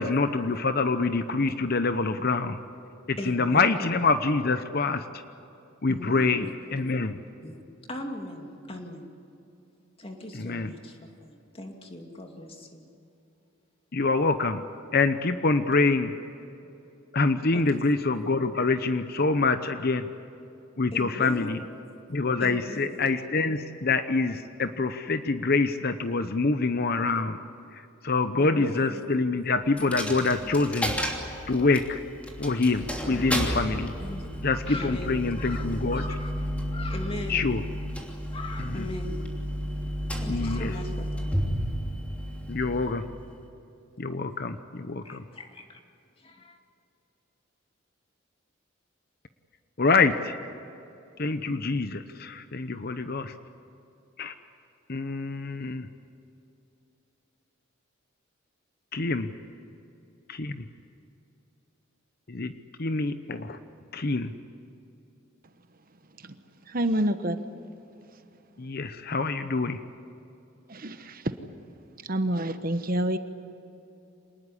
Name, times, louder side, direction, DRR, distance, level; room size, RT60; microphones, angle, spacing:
voice 1, 0.0-2.6 3.1-5.0 5.8-6.5 6.7-7.2 10.3-10.7 13.9-14.6 14.9-16.1 17.1-20.1 20.8-21.6 22.1-27.4 28.0-31.0 31.5-32.0 32.4-33.9 34.4-36.0 37.3-37.6 38.8-38.9 40.3-40.7 42.5-43.0 44.0-45.2 49.8-50.3 51.2-53.3 54.2-54.3 54.9-55.9 58.9-59.3 60.3-60.7 62.3-62.5 62.8-63.6 63.9-64.3 68.6-69.8, left 3 dB, 50° left, 10 dB, 0.9 m, -26 dB
voice 2, 3.2-3.9 5.9-6.6 7.4-7.6 7.9-9.1 10.0-12.9 17.5-17.8 20.9-21.7 22.4-23.0 28.4-29.1 34.0-37.6 38.3-39.3 40.2-41.4 45.0-45.8 46.2-46.6, left 1 dB, 30° left, 3 dB, 2.5 m, -39 dB
Coin (dropping), 29.8-43.5, equal, 5° left, 3.0 m, -32 dB
voice 3, 66.7-67.4 70.7-71.3 72.1-73.2, right 1 dB, 45° right, 9 dB, 1.1 m, -27 dB
26.5 x 20.0 x 9.8 m, 2.8 s
head